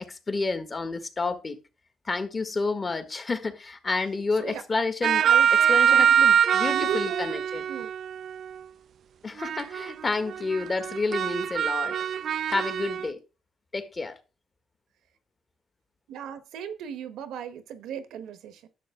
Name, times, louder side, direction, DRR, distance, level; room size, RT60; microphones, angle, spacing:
voice 1, 0.0-1.6 2.1-5.2 5.7-7.6 9.2-11.9 12.5-13.2 13.7-14.2, left 3 dB, 30° left, 1.7 m, -30 dB
sound 1, 5.0-8.5 9.4-9.9 10.3-13.1, right 8 dB, 60° right, 0.4 m, -23 dB
voice 2, 5.2-6.2 6.6-7.4 7.7-7.9 16.1-18.7, right 8 dB, 85° right, 1.2 m, -36 dB
11.0 x 6.9 x 3.7 m
cardioid pair, 90°, 0 cm